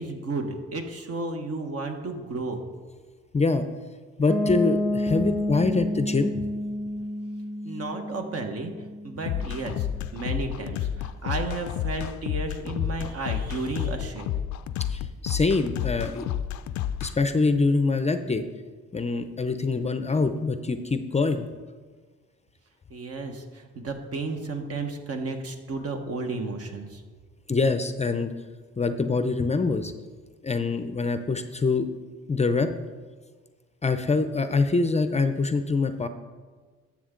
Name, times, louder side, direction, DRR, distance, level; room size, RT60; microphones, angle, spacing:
voice 1, 0.0-2.6 7.6-9.9 10.1-14.3 22.9-27.0, right 3 dB, 50° right, 4 dB, 1.4 m, -33 dB
voice 2, 3.3-3.7 4.2-6.5 14.9-16.3 17.0-18.4 18.9-21.5 27.5-28.3 28.8-29.9 30.4-31.9 32.3-32.7 33.8-36.1, left 3 dB, 20° left, 9 dB, 0.6 m, -24 dB
Piano, 4.3-10.0, left 1 dB, ahead, 0.9 m, -30 dB
sound 1, 9.3-17.1, left 10 dB, 70° left, 0.5 m, -30 dB
12.5 x 7.2 x 3.8 m, 1.5 s
cardioid pair, 90°, 30 cm